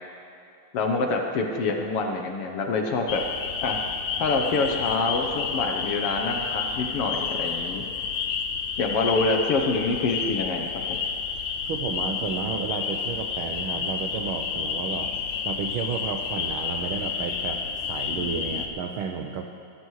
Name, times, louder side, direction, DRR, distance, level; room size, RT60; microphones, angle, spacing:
voice 1, 0.7-3.2 3.6-3.8 4.2-7.8 8.8-10.8, left 3 dB, 65° left, 3 dB, 1.6 m, -26 dB
sound 1, 3.1-18.7, left 6 dB, 85° left, 2.3 m, -30 dB
voice 2, 11.6-15.2 15.4-19.5, right 6 dB, 85° right, 3 dB, 1.1 m, -32 dB
22.0 x 14.5 x 3.2 m, 2.5 s
omnidirectional pair, 3.4 m